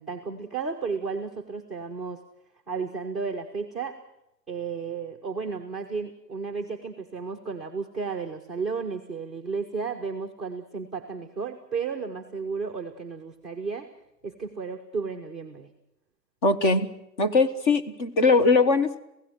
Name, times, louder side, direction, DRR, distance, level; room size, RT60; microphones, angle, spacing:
voice 1, 0.0-2.2 2.7-4.0 4.5-13.9 14.2-15.7, right 5 dB, ahead, -1 dB, 0.8 m, -33 dB
voice 2, 16.4-16.9 17.2-19.0, left 3 dB, 30° left, 7 dB, 1.3 m, -21 dB
27.0 x 16.5 x 6.3 m, 0.84 s
hypercardioid pair, 140°, 50 cm